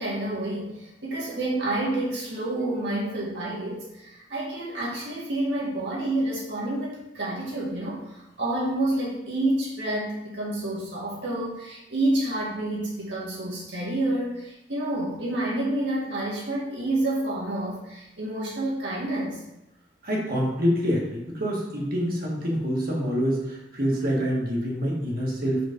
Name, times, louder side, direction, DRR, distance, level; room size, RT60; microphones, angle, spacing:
voice 1, 0.0-19.4, right 1 dB, 70° right, -6 dB, 2.2 m, -29 dB
voice 2, 20.0-25.7, equal, 55° right, -3 dB, 1.7 m, -26 dB
5.0 x 4.0 x 5.3 m, 0.90 s
head